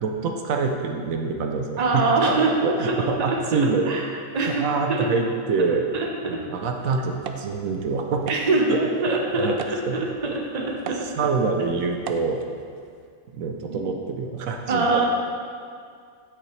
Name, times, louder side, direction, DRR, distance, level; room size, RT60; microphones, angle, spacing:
voice 1, 0.0-2.4 2.6-3.9 4.4-5.8 6.3-8.3 8.7-8.8 9.4-9.6 9.9-10.0 11.2-12.4 13.3-15.1, right 4 dB, 80° right, 3 dB, 1.1 m, -26 dB
voice 2, 1.8-4.1 4.3-5.1 5.9-6.5 8.3-11.1 13.7-13.8 14.7-15.1, right 3 dB, 35° right, -1 dB, 0.9 m, -24 dB
sound 1, 6.6-13.1, right 6 dB, 65° right, 0.6 m, -40 dB
9.3 x 7.8 x 3.2 m, 2.2 s
omnidirectional pair, 1.4 m